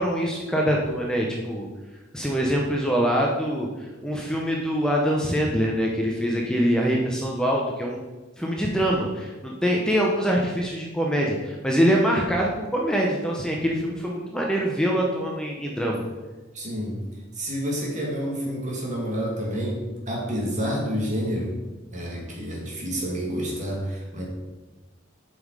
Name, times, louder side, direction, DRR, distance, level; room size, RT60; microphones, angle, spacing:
voice 1, 0.0-1.7 2.1-8.0 8.4-16.0, equal, 5° left, -2 dB, 0.8 m, -24 dB
voice 2, 16.5-17.0 17.4-19.8 20.1-21.5 21.9-24.2, equal, 40° right, -2 dB, 2.2 m, -29 dB
7.7 x 5.5 x 4.9 m, 1.2 s
head